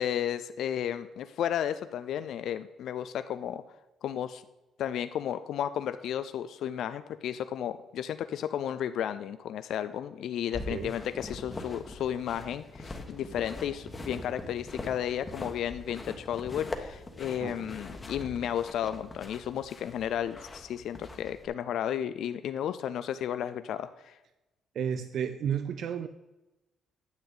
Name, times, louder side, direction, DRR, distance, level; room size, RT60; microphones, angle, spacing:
voice 1, 0.0-3.6 4.0-4.4 4.8-24.1, left 10 dB, 75° left, 12 dB, 0.4 m, -33 dB
sound 1, 10.5-21.5, left 2 dB, 25° left, 1.1 m, -42 dB
voice 2, 10.5-10.9 17.4-17.7 24.7-26.1, right 8 dB, 65° right, 11 dB, 0.4 m, -33 dB
9.5 x 7.2 x 3.8 m, 1.0 s
cardioid pair, 90°, 0 cm